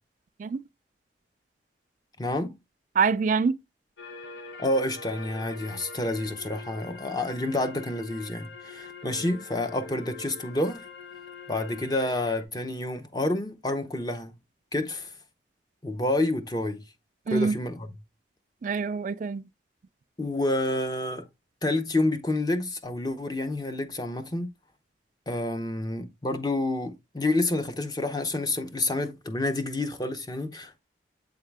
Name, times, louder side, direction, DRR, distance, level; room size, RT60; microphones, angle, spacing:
voice 1, 2.2-2.6 4.6-10.8 11.5-14.3 14.7-15.1 15.8-16.8 17.3-17.9 20.2-21.2 21.6-24.5 25.3-30.8, left 2 dB, 20° left, 0.7 m, -29 dB
voice 2, 3.0-3.6 17.3-17.6 18.6-19.5, right 5 dB, 45° right, 0.3 m, -25 dB
sound 1, 4.0-12.4, left 4 dB, 85° left, 1.1 m, -44 dB
8.0 x 3.7 x 3.3 m
head